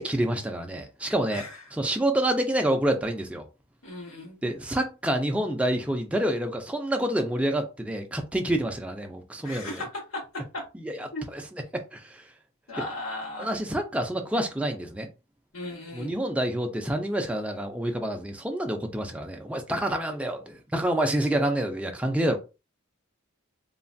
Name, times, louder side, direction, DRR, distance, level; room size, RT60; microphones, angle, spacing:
voice 1, 0.0-1.4 1.7-3.4 4.4-9.8 10.8-12.3 13.4-15.1 15.9-22.4, right 1 dB, 5° right, 0.4 m, -28 dB
voice 2, 1.3-1.6 3.8-4.4 9.4-10.2 11.1-11.2 12.7-13.5 15.5-16.1, left 2 dB, 85° left, 1.7 m, -36 dB
3.2 x 2.2 x 2.5 m
head